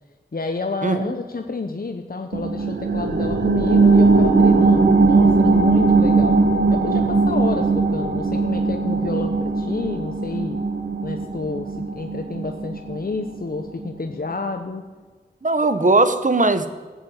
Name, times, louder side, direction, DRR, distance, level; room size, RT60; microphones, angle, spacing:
voice 1, 0.3-6.4 6.7-10.6 11.0-14.8, left 3 dB, 55° left, 5 dB, 1.0 m, -29 dB
voice 2, 0.8-1.1 15.4-16.7, right 2 dB, 45° right, 11 dB, 1.2 m, -18 dB
sound 1, 2.3-13.4 13.8-13.9, right 3 dB, 75° right, 1.5 m, -19 dB
15.0 x 8.1 x 8.8 m, 1.4 s
wide cardioid pair, 65°, 18 cm